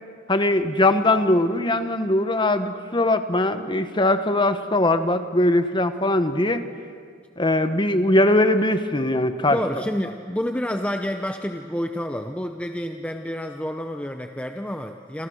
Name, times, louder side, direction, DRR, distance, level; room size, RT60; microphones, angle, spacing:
voice 1, 0.3-6.6 7.4-9.6, left 1 dB, 25° left, 9 dB, 1.2 m, -21 dB
voice 2, 9.5-15.3, equal, 5° left, 5 dB, 0.7 m, -29 dB
28.0 x 27.0 x 6.5 m, 2.1 s
head